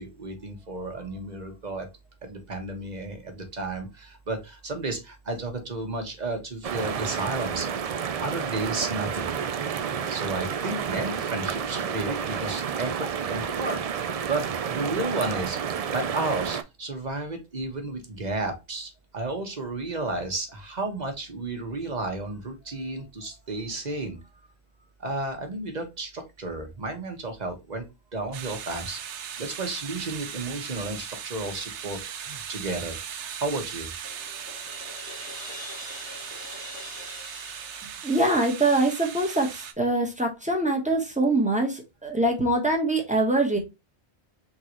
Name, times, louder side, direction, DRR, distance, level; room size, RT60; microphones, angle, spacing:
voice 1, 0.0-1.9 2.2-7.7 8.2-9.3 10.1-13.8 14.3-15.6 15.9-24.2 25.0-27.9 28.1-29.0 29.4-33.9, right 2 dB, 40° right, 4 dB, 1.2 m, -32 dB
sound 1, 6.6-16.6, right 7 dB, 70° right, 0.3 m, -30 dB
sound 2, 28.3-39.7, right 8 dB, 85° right, 1.0 m, -38 dB
Crash cymbal, 34.0-39.0, left 4 dB, 75° left, 1.4 m, -44 dB
voice 2, 38.0-43.6, right 2 dB, 5° right, 1 dB, 1.0 m, -24 dB
3.8 x 3.8 x 3.0 m, 0.23 s
omnidirectional pair, 1.2 m